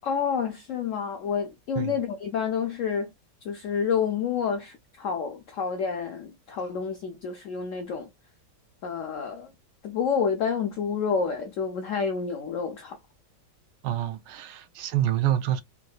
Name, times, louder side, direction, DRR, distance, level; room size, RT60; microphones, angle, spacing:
voice 1, 0.0-3.1 3.4-8.1 8.8-9.5 9.8-13.0, left 6 dB, 80° left, 0.7 m, -29 dB
voice 2, 13.8-15.6, right 12 dB, 85° right, 1.3 m, -27 dB
3.5 x 2.8 x 2.2 m
omnidirectional pair, 1.9 m